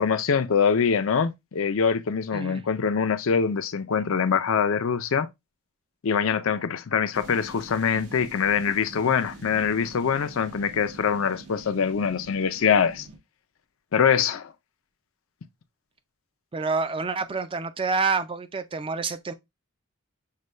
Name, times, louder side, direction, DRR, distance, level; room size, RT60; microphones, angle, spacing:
voice 1, 0.0-5.3 6.0-13.1 13.9-14.5, left 6 dB, 60° left, 0.5 m, -24 dB
voice 2, 2.3-2.6 16.5-19.3, right 4 dB, 25° right, 0.4 m, -28 dB
sound 1, 7.1-13.2, right 2 dB, 75° right, 1.1 m, -45 dB
6.5 x 2.2 x 3.1 m
head